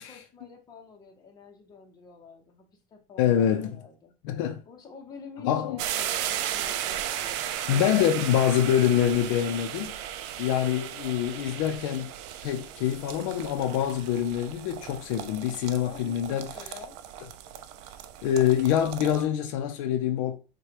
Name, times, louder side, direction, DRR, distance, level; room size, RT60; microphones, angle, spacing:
voice 1, 0.0-4.1 4.6-7.4 15.8-17.0, left 4 dB, 25° left, 0.8 m, -48 dB
voice 2, 3.2-3.7 4.2-4.6 5.4-5.8 7.7-9.9 10.4-12.2 12.4-16.7 18.2-20.4, left 10 dB, 75° left, 0.5 m, -25 dB
sound 1, 5.8-19.2, right 11 dB, 65° right, 0.4 m, -36 dB
4.7 x 2.3 x 2.8 m
cardioid pair, 150°, 16 cm